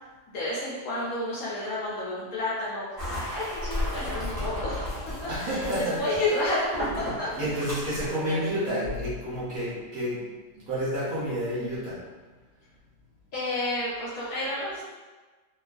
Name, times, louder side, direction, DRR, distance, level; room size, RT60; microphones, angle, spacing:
voice 1, 0.3-4.9 5.2-7.8 8.1-8.6 13.3-14.8, left 1 dB, 65° left, -8 dB, 1.0 m, -31 dB
sound 1, 3.0-8.1, left 1 dB, 15° right, 0.7 m, -34 dB
voice 2, 5.3-6.2 7.4-10.2 10.7-12.0, equal, 60° right, -9 dB, 1.1 m, -29 dB
3.0 x 2.4 x 2.4 m, 1.3 s
omnidirectional pair, 2.0 m